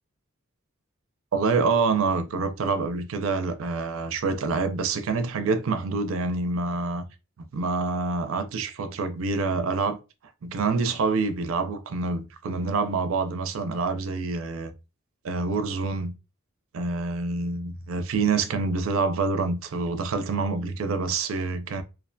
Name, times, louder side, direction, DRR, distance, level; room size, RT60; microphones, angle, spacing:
voice 1, 1.3-7.0 7.5-10.0 10.4-14.7 15.2-16.1 16.7-21.8, right 4 dB, 65° right, 0.4 m, -26 dB
2.4 x 2.1 x 2.5 m
head